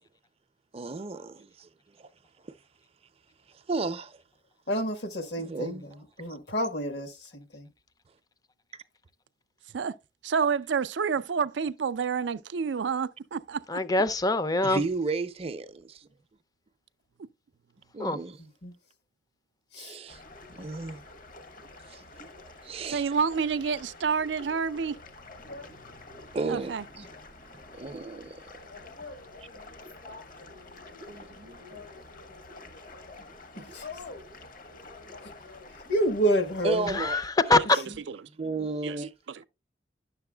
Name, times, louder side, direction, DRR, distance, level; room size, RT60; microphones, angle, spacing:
voice 1, 0.7-1.7 2.0-2.1 2.4-2.5 3.5-4.2 5.4-5.9 6.3-6.4 8.7-8.8 14.6-16.1 17.9-18.4 19.8-20.2 20.5-21.1 21.6-23.2 26.3-27.1 27.7-28.4 31.1-31.8 33.6-33.7 36.6-37.3 37.9-38.0 38.4-39.1, right 3 dB, 35° right, 0.5 m, -34 dB
voice 2, 4.7-7.7 18.4-18.7 19.7-20.0 33.5-33.8 35.9-37.0, right 1 dB, 70° left, 1.3 m, -29 dB
voice 3, 10.2-13.8 17.2-17.3 22.9-25.0 26.5-26.8 37.5-38.2 38.8-39.0, right 6 dB, 90° right, 0.5 m, -29 dB
voice 4, 13.7-14.8 18.0-18.2 36.9-37.8, left 2 dB, 20° left, 0.5 m, -24 dB
sound 1, 20.1-37.2, left 2 dB, 50° left, 1.0 m, -48 dB
voice 5, 25.4-25.8 28.7-34.3 34.7-36.5, left 4 dB, 85° left, 3.3 m, -48 dB
10.5 x 6.8 x 2.3 m
head